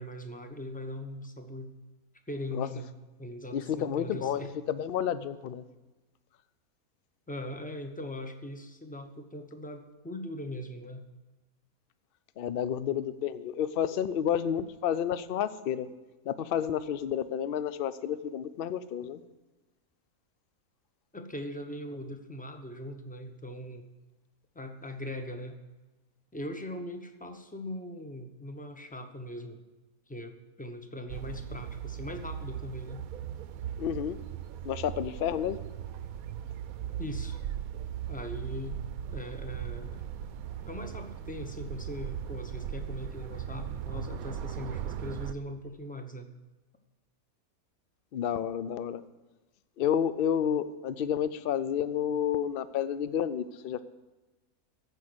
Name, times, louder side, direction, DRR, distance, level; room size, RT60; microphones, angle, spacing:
voice 1, 0.0-1.7 2.3-2.9 3.2-4.5 7.3-11.0 21.1-23.8 24.5-25.6 26.3-29.6 30.1-33.0 37.0-37.4 38.1-38.8 39.1-40.0 40.7-46.3, left 1 dB, 5° left, 6 dB, 0.7 m, -40 dB
voice 2, 3.5-5.6 12.4-15.9 16.3-19.2 33.8-34.2 34.6-35.6 48.1-49.0 49.8-53.8, left 9 dB, 60° left, 14 dB, 0.6 m, -30 dB
sound 1, 31.1-45.3, right 10 dB, 75° right, 1.0 m, -38 dB
14.5 x 5.4 x 7.9 m, 1.1 s
omnidirectional pair, 1.5 m